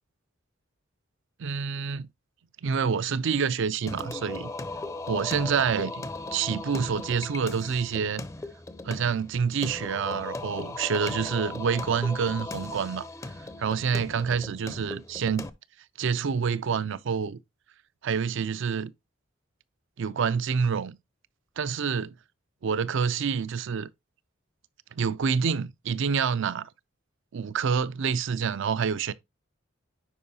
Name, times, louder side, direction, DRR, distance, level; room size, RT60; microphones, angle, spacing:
voice 1, 1.4-2.1 2.6-4.5 5.1-8.2 8.8-13.1 13.6-15.5 16.0-17.4 18.0-18.9 20.0-21.0 21.6-22.1 22.6-23.9 25.0-26.7 27.3-29.1, right 6 dB, 65° right, 0.4 m, -27 dB
Singing, 3.9-15.5, left 2 dB, 15° left, 0.5 m, -37 dB
9.9 x 4.7 x 2.8 m
head